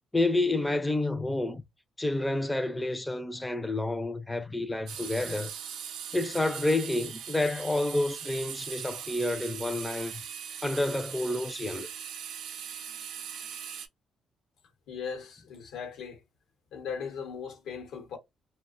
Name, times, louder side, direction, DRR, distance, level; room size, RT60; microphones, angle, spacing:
voice 1, 0.1-1.6 2.0-5.5 6.1-10.2 10.6-11.9, left 2 dB, 10° left, 0.4 m, -29 dB
sound 1, 4.9-13.9, right 8 dB, 80° right, 0.4 m, -40 dB
voice 2, 14.9-16.2 16.7-18.2, left 6 dB, 90° left, 0.9 m, -38 dB
2.5 x 2.1 x 2.4 m
cardioid pair, 90°, 0 cm